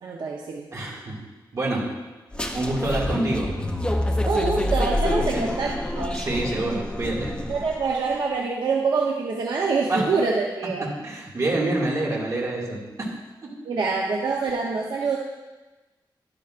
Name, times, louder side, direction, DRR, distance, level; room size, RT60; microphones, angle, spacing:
voice 1, 0.0-0.7 4.3-6.2 7.5-10.9 13.7-15.2, right 4 dB, 65° right, -1 dB, 0.8 m, -25 dB
voice 2, 0.7-1.2 1.5-1.8 2.5-3.5 5.3-5.4 6.1-7.3 9.9-10.1 10.8-12.8, right 2 dB, 40° right, -3 dB, 2.2 m, -27 dB
sound 1, 2.3-7.9, left 1 dB, 10° left, 0.7 m, -27 dB
12.0 x 10.5 x 2.5 m, 1.2 s
wide cardioid pair, 150°, 8 cm